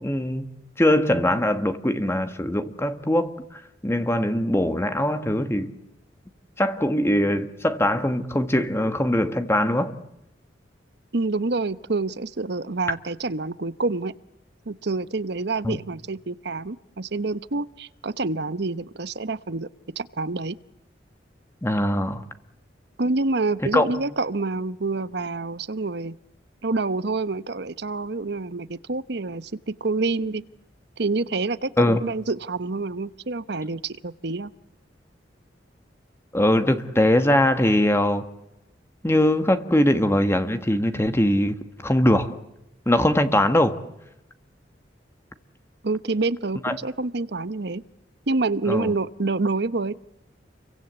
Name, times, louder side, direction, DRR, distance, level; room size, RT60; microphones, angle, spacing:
voice 1, 0.0-5.7 6.6-10.0 12.9-13.0 15.6-15.8 21.6-22.2 23.7-24.0 31.8-32.1 36.3-38.2 39.0-42.4 42.8-43.8 46.6-46.8 48.6-48.9, left 1 dB, 15° left, 1.5 m, -22 dB
voice 2, 11.1-14.1 14.7-19.7 20.0-20.6 23.0-26.2 26.6-30.4 31.0-34.5 45.8-47.8 48.3-50.0, right 3 dB, 65° right, 1.0 m, -27 dB
30.0 x 23.5 x 8.2 m
head